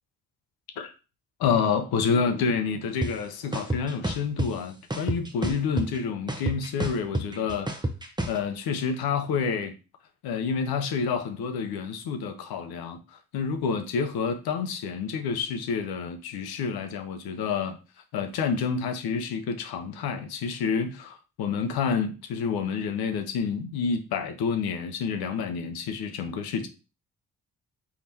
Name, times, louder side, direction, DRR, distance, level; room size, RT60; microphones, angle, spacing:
voice 1, 1.4-7.7 8.3-9.7 10.2-17.8 18.1-26.7, left 6 dB, 65° left, 0.8 m, -28 dB
sound 1, 3.0-3.1 3.5-4.5 4.9-6.0 6.3-8.4, right 1 dB, 10° right, 0.9 m, -28 dB
4.7 x 3.6 x 2.8 m
hypercardioid pair, 40°, 41 cm